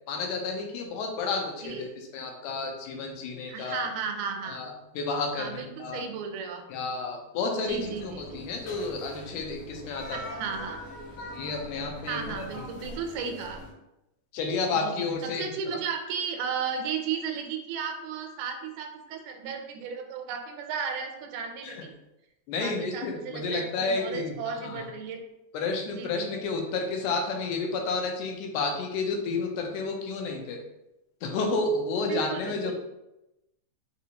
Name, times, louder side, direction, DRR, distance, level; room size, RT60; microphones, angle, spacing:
voice 1, 0.1-3.9 4.5-6.0 6.7-10.2 11.2-12.2 14.3-15.8 21.6-21.8 22.5-24.9 25.5-30.6 31.2-32.7, left 3 dB, 85° left, 2 dB, 2.2 m, -31 dB
voice 2, 3.5-4.6 5.4-6.6 7.7-8.4 10.1-10.8 12.1-13.6 14.8-21.9 22.6-25.2 25.9-26.3 32.1-32.7, right 6 dB, 85° right, 5 dB, 2.1 m, -34 dB
sound 1, 7.6-13.7, equal, 70° left, 1.5 m, -42 dB
5.1 x 2.8 x 2.8 m, 0.92 s
omnidirectional pair, 3.6 m